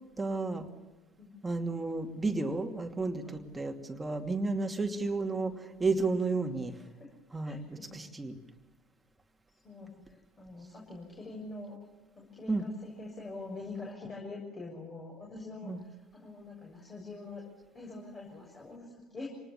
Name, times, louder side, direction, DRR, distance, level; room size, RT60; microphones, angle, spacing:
voice 1, 0.2-0.6 1.4-6.7 7.3-7.6 7.9-8.3 12.5-12.6 15.6-15.8, right 3 dB, 15° right, 4 dB, 2.7 m, -32 dB
voice 2, 6.8-7.1 7.4-8.1 9.6-11.8 12.2-17.5 17.7-19.4, left 3 dB, 30° left, -1 dB, 7.1 m, -45 dB
27.0 x 19.5 x 7.2 m, 1.1 s
figure-of-eight pair, 65°, 0 cm